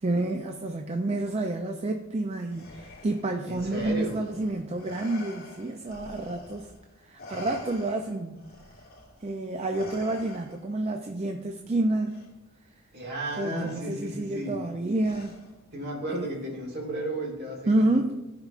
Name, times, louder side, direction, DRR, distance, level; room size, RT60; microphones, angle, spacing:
voice 1, 0.0-6.7 7.0-8.4 9.2-12.2 13.4-15.4 16.1-16.3 17.7-18.1, right 2 dB, 30° right, 4 dB, 0.4 m, -29 dB
Respiratory sounds, 2.5-6.8 7.2-10.8 12.1-12.3 13.3-13.8 15.0-15.7, left 2 dB, 45° left, 1.5 m, -47 dB
voice 2, 3.5-4.2 12.9-14.6 15.7-18.0, right 1 dB, 50° right, -1 dB, 2.0 m, -34 dB
14.5 x 5.1 x 2.5 m, 1.0 s
head